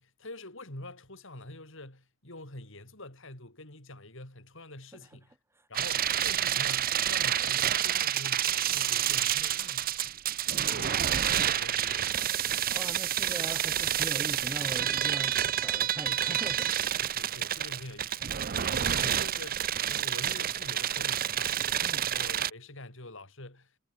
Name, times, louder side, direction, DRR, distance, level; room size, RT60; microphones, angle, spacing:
voice 1, 0.0-5.4 5.7-10.0 10.7-10.9 11.3-12.7 17.0-23.8, left 2 dB, 65° left, 7.1 m, -46 dB
sound 1, 5.7-22.5, right 10 dB, 45° right, 0.7 m, -29 dB
voice 2, 12.7-16.7 21.8-22.1, right 1 dB, 10° right, 5.5 m, -41 dB
head